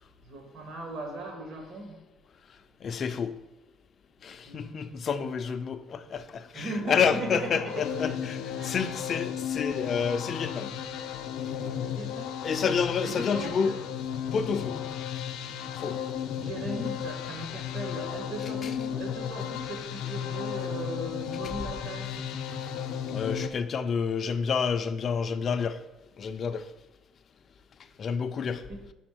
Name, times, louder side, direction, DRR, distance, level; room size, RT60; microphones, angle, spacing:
voice 1, 0.2-2.0 4.4-4.8 6.5-8.2 8.5-8.8 11.8-12.7 13.0-13.8 16.4-22.2 28.7-28.9, right 2 dB, 55° right, 1.7 m, -38 dB
voice 2, 2.8-3.3 4.2-10.7 12.4-13.8 14.3-14.8 15.8-16.0 23.1-25.8 26.2-26.6 28.0-28.6, left 6 dB, 40° left, 0.4 m, -29 dB
sound 1, 7.0-23.5, left 9 dB, 80° left, 0.6 m, -34 dB
5.8 x 4.2 x 6.1 m
cardioid pair, 135°, 0 cm